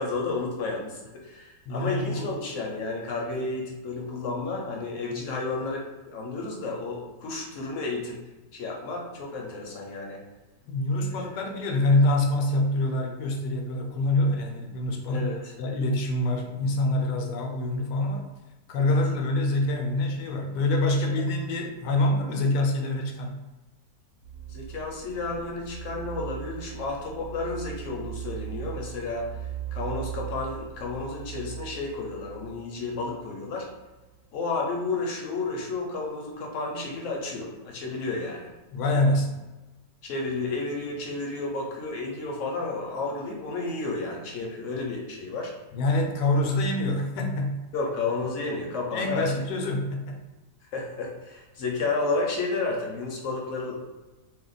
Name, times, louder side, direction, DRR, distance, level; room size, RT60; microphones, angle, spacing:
voice 1, 0.0-8.2 8.5-10.2 11.1-11.4 15.1-15.5 18.8-19.0 21.2-21.3 24.5-33.7 34.3-38.5 40.0-45.5 47.7-49.4 50.7-53.8, left 3 dB, 65° left, -1 dB, 0.8 m, -32 dB
voice 2, 1.7-2.3 10.7-15.3 15.6-18.3 18.7-23.4 38.7-39.4 45.7-47.6 48.9-50.2, left 2 dB, 85° left, 3 dB, 1.2 m, -25 dB
sound 1, 24.2-34.0, right 11 dB, 40° right, 0.9 m, -39 dB
2.8 x 2.1 x 3.9 m, 1.1 s
omnidirectional pair, 1.8 m